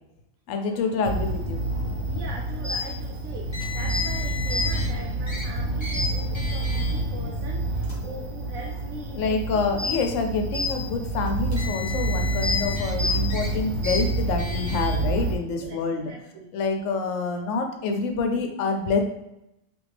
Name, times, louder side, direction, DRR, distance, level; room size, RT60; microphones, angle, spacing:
voice 1, 0.5-1.7 9.1-16.0 16.5-19.0, left 4 dB, 75° left, 4 dB, 0.9 m, -27 dB
sound 1, 1.0-15.4, right 1 dB, 60° right, 0.9 m, -28 dB
voice 2, 1.9-9.9 15.6-16.5, right 2 dB, 85° right, -2 dB, 1.0 m, -41 dB
Car, 3.5-4.9 5.3-5.4 5.8-6.0 6.3-6.9 7.7-7.9 8.9-9.0 11.3-12.9 13.3-13.5 13.8-14.0 14.4-15.0, left 4 dB, 25° left, 0.7 m, -35 dB
2.8 x 2.5 x 3.2 m, 0.86 s
omnidirectional pair, 1.4 m